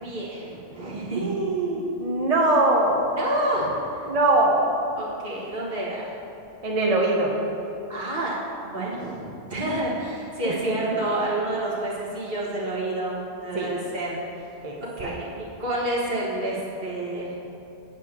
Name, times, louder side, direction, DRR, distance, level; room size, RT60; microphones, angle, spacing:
voice 1, 0.0-1.4 3.1-3.7 5.0-6.1 7.9-8.4 8.6-14.4 14.8-17.4, right 1 dB, 55° right, -6 dB, 1.9 m, -29 dB
voice 2, 1.1-3.2 4.1-4.7 6.6-7.3 10.4-10.8 13.5-13.7 14.6-15.1, right 2 dB, 40° right, -1 dB, 0.7 m, -22 dB
8.1 x 4.5 x 7.2 m, 2.7 s
omnidirectional pair, 1.2 m